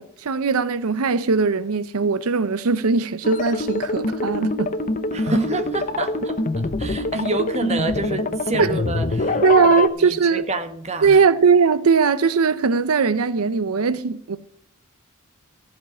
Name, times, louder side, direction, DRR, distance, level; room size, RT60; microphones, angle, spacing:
voice 1, 0.0-4.7 8.6-8.8 9.4-10.4 11.0-14.4, right 5 dB, 90° right, 0.6 m, -19 dB
sound 1, 3.2-9.9, left 2 dB, 40° left, 0.8 m, -24 dB
voice 2, 5.1-9.4 9.7-11.2, right 3 dB, 30° right, 1.3 m, -28 dB
15.0 x 5.2 x 9.1 m
head